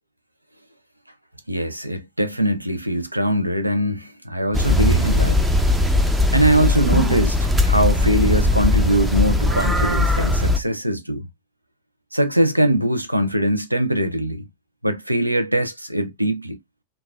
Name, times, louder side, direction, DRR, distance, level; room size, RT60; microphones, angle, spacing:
voice 1, 1.5-5.4 6.3-11.3 12.1-14.5 14.8-16.6, right 1 dB, 85° right, 0.5 m, -22 dB
sound 1, 4.5-10.6, left 2 dB, 10° right, 0.5 m, -19 dB
3.8 x 2.3 x 2.3 m
figure-of-eight pair, 90°, 0 cm